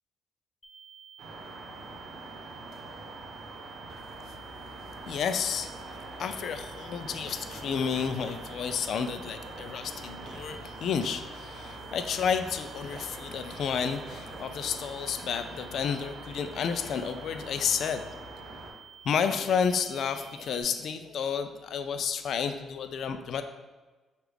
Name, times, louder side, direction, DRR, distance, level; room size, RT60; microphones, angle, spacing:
sound 1, 0.6-20.6, right 8 dB, 25° left, 0.6 m, -51 dB
sound 2, 1.2-18.7, right 2 dB, 75° right, 0.8 m, -44 dB
sound 3, 3.9-12.5 12.8-14.4, right 2 dB, 35° right, 0.5 m, -52 dB
voice 1, 5.1-18.0 19.0-23.4, left 7 dB, 65° left, 8 dB, 0.3 m, -31 dB
6.1 x 2.4 x 3.4 m, 1.3 s
cardioid pair, 90°, 0 cm